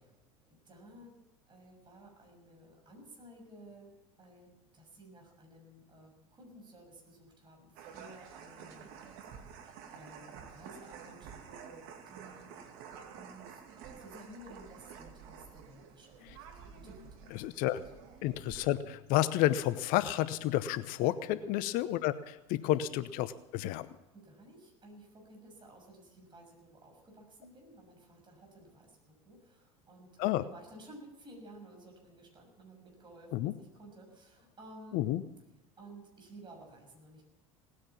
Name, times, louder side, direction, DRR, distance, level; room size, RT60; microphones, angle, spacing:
voice 1, 0.4-1.1 1.5-8.9 9.3-9.6 9.9-16.4 16.7-17.4 17.8-18.0 21.2-21.5 24.1-35.1 35.8-37.2, right 1 dB, 25° right, 1 dB, 6.5 m, -54 dB
sound 1, 7.8-18.8, right 7 dB, 60° right, 2.4 m, -50 dB
voice 2, 17.3-17.8 18.2-23.9 30.2-30.4 33.3-33.5 34.9-35.2, left 14 dB, 55° left, 15 dB, 0.8 m, -30 dB
18.5 x 9.8 x 7.2 m, 1.0 s
hypercardioid pair, 75°, 17 cm